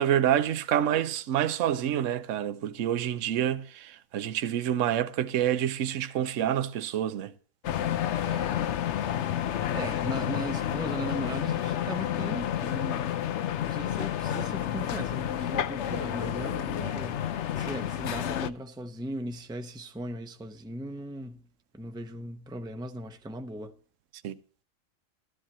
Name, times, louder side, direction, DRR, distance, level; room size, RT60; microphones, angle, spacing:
voice 1, 0.0-7.3 16.8-16.9 24.2-24.4, right 10 dB, 70° right, 1.0 m, -27 dB
sound 1, 7.6-18.5, left 10 dB, 60° left, 0.9 m, -30 dB
voice 2, 8.2-8.6 8.9-9.4 9.7-21.5 21.7-23.8, right 1 dB, 5° right, 0.7 m, -38 dB
14.0 x 12.5 x 2.9 m
omnidirectional pair, 1.4 m